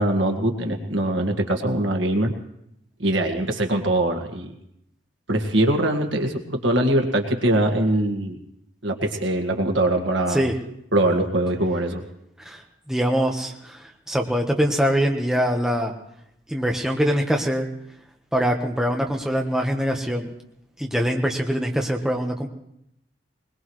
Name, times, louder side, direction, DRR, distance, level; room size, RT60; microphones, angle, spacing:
voice 1, 0.0-2.3 3.0-4.5 5.3-8.4 8.8-10.4 10.9-12.0, right 1 dB, 90° right, 4 dB, 1.9 m, -22 dB
voice 2, 12.4-15.9 16.5-17.7 18.3-20.3 20.8-22.5, equal, 5° right, 1 dB, 1.2 m, -23 dB
21.0 x 21.0 x 3.2 m, 0.77 s
head